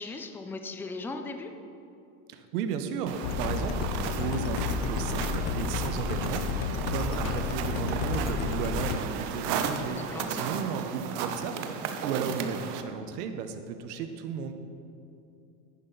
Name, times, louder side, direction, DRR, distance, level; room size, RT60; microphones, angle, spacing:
voice 1, 0.0-1.5 9.8-10.5, left 3 dB, 5° left, 6 dB, 0.4 m, -38 dB
voice 2, 2.3-10.0 10.3-11.5 12.0-14.5, right 6 dB, 90° right, 8 dB, 1.0 m, -34 dB
sound 1, 3.1-12.8, right 7 dB, 55° right, 1.0 m, -34 dB
sound 2, 3.2-9.0, left 6 dB, 65° left, 0.8 m, -31 dB
11.0 x 9.8 x 4.0 m, 2.7 s
supercardioid pair, 115°, 45 cm